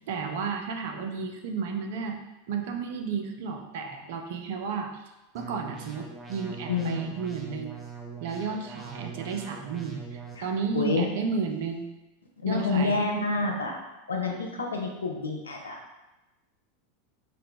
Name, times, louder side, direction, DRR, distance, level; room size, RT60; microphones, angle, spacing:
voice 1, 0.1-2.2 2.5-7.8 8.2-11.9 12.5-13.0 14.3-14.4, right 5 dB, 60° right, 4 dB, 0.4 m, -33 dB
sound 1, 5.3-10.3, right 5 dB, 20° right, 0.7 m, -42 dB
voice 2, 6.7-7.1 10.4-10.5 10.7-11.1 12.4-13.8 14.1-15.8, left 3 dB, 80° left, 0 dB, 0.6 m, -28 dB
3.7 x 2.2 x 3.7 m, 1.0 s
figure-of-eight pair, 85°, 0 cm